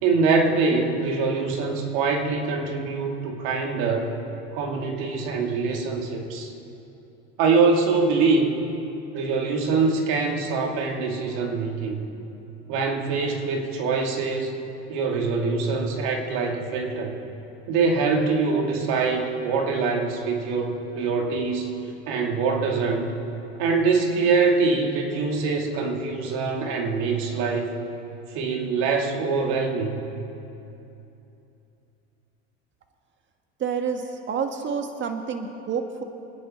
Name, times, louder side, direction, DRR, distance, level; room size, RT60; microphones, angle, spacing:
voice 1, 0.0-4.1 4.5-6.5 7.4-8.5 9.1-12.0 12.7-14.6 14.9-17.2 17.7-21.7 22.1-23.2 23.6-27.7 28.3-30.0, right 4 dB, 70° right, 2 dB, 2.4 m, -24 dB
voice 2, 33.6-36.0, right 6 dB, 35° right, 5 dB, 1.5 m, -28 dB
26.0 x 10.0 x 4.3 m, 2.8 s
supercardioid pair, 95°, 32 cm